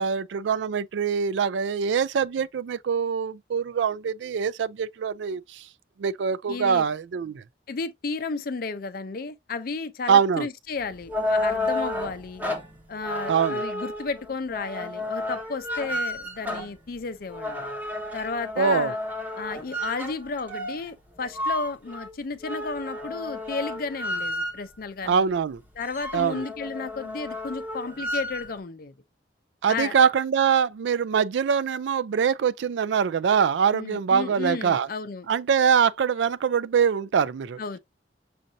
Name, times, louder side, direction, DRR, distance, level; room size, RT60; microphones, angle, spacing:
voice 1, 0.0-5.7 6.0-7.4 10.1-10.5 13.3-13.6 18.6-18.9 25.0-25.6 26.1-26.4 29.6-34.9 35.3-37.6, right 7 dB, 80° right, 0.4 m, -23 dB
voice 2, 6.5-6.8 7.7-12.5 12.9-17.6 18.1-19.0 19.4-25.3 25.8-28.9 29.7-29.9 33.7-35.3 37.6-37.8, left 4 dB, 55° left, 0.5 m, -33 dB
sound 1, 10.8-24.8 25.3-25.4 25.7-28.5, left 1 dB, 10° right, 0.9 m, -32 dB
6.3 x 2.6 x 2.7 m
head